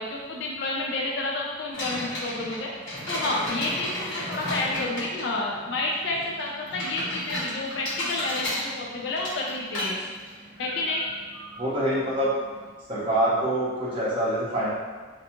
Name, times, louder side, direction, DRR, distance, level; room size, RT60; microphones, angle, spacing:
voice 1, 0.0-2.7 3.1-10.0 10.6-11.0, left 2 dB, 55° left, -2 dB, 0.4 m, -30 dB
sound 1, 1.7-12.7, left 1 dB, 75° left, 1.2 m, -35 dB
voice 2, 11.6-12.4 12.9-14.7, right 1 dB, 25° right, -9 dB, 0.6 m, -25 dB
2.5 x 2.3 x 2.8 m, 1.5 s
head